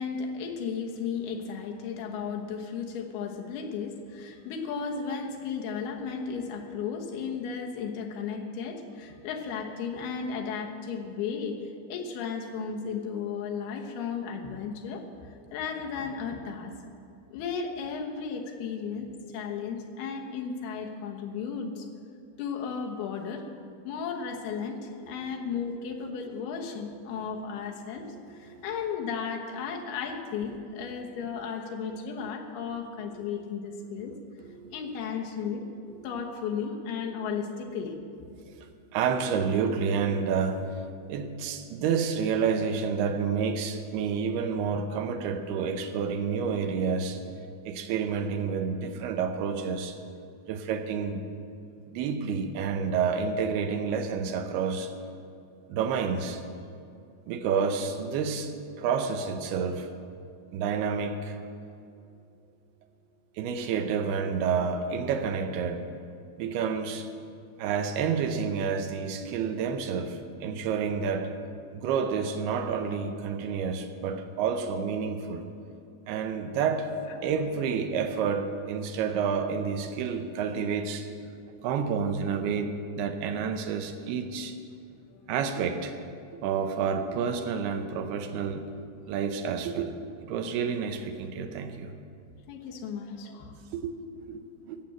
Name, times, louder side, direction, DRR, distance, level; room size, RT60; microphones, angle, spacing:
voice 1, 0.0-16.7 17.3-21.9 22.4-23.5 23.8-34.1 34.7-35.7 36.0-38.0 77.1-77.3 84.9-85.3 92.5-93.5, left 6 dB, 80° left, 2 dB, 3.1 m, -34 dB
voice 2, 34.4-34.7 38.5-40.8 41.1-47.2 47.7-50.0 50.5-51.2 51.9-54.9 55.7-56.4 57.3-59.9 60.5-61.4 63.4-65.9 66.4-67.1 67.6-71.3 71.7-75.5 76.1-76.9 77.2-81.1 81.6-84.6 85.3-86.0 86.3-88.7 89.1-91.9 93.7-94.8, right 6 dB, 80° right, 7 dB, 2.8 m, -29 dB
15.0 x 7.6 x 7.6 m, 2.5 s
omnidirectional pair, 4.6 m